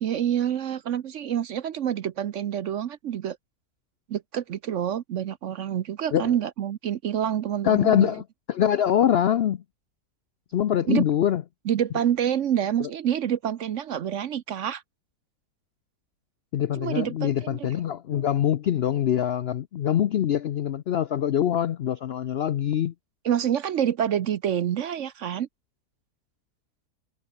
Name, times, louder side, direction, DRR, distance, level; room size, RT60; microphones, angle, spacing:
voice 1, 0.0-3.4 4.1-8.1 10.9-11.0 11.7-14.8 16.8-17.7 18.1-18.2 23.2-25.5, right 10 dB, 60° right, 0.9 m, -27 dB
voice 2, 7.6-9.6 10.5-11.4 12.8-12.9 16.5-22.9, left 10 dB, 70° left, 0.6 m, -24 dB
omnidirectional pair, 1.7 m